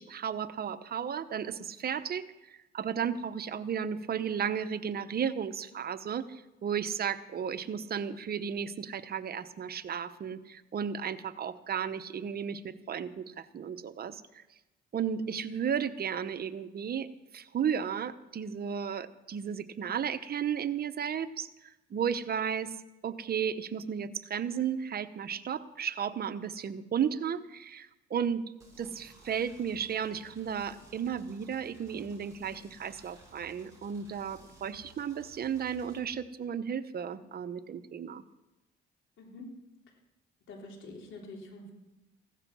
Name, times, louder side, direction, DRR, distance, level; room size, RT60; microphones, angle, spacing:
voice 1, 0.0-14.4 14.9-17.1 17.3-22.8 23.0-28.4 28.8-38.2, right 7 dB, 50° right, 11 dB, 0.9 m, -34 dB
sound 1, 28.6-36.0, right 2 dB, 15° right, 7.0 m, -57 dB
voice 2, 39.2-39.5 40.5-41.7, left 2 dB, 80° left, 1 dB, 3.7 m, -46 dB
16.0 x 12.5 x 6.1 m, 0.99 s
cardioid pair, 90°, 20 cm